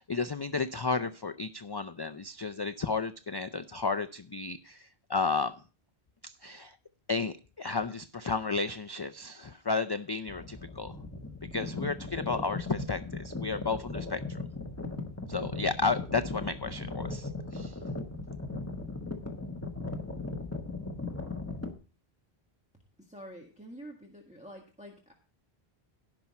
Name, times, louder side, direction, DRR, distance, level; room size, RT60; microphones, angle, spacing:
voice 1, 0.0-5.5 6.2-6.7 7.1-10.9 11.5-14.4 15.3-17.8, left 4 dB, 40° left, 8 dB, 0.3 m, -33 dB
sound 1, 10.3-21.7, left 3 dB, 15° left, 1.3 m, -38 dB
voice 2, 23.1-25.1, equal, 5° right, 0 dB, 1.5 m, -47 dB
17.0 x 5.9 x 4.2 m, 0.36 s
omnidirectional pair, 1.1 m